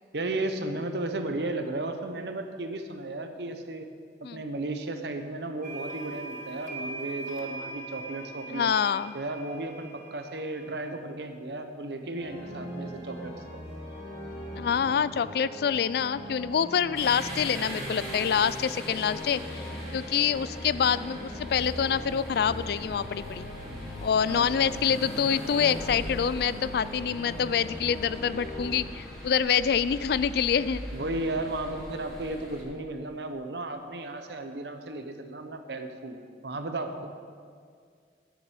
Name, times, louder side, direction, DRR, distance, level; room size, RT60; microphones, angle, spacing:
voice 1, 0.1-3.9 4.2-8.7 9.1-13.6 24.3-24.8 30.9-36.2 36.4-37.1, right 2 dB, 70° right, 7 dB, 0.9 m, -34 dB
sound 1, 5.6-10.9, right 2 dB, 45° right, 1.0 m, -41 dB
voice 2, 8.5-9.1 14.6-19.6 19.9-23.5 24.0-30.8, left 7 dB, 60° left, 17 dB, 0.3 m, -26 dB
sound 2, 12.1-28.8, left 1 dB, 35° left, 2.1 m, -41 dB
sound 3, 17.0-32.6, equal, ahead, 2.8 m, -40 dB
10.0 x 7.5 x 7.2 m, 2.1 s
head